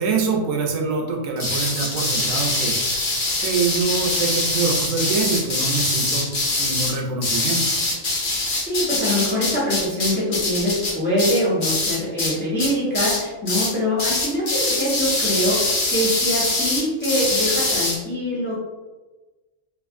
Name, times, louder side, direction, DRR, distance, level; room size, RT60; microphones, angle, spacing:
voice 1, 0.0-2.7 3.4-6.3 6.6-7.6, right 5 dB, 85° right, 0 dB, 1.0 m, -24 dB
sound 1, 1.4-12.3 12.6-13.2 13.5-13.7 14.0-18.0, left 2 dB, 45° left, 0.8 m, -23 dB
voice 2, 8.3-18.6, equal, 10° left, -8 dB, 0.8 m, -24 dB
2.9 x 2.4 x 2.5 m, 1.2 s
omnidirectional pair, 1.3 m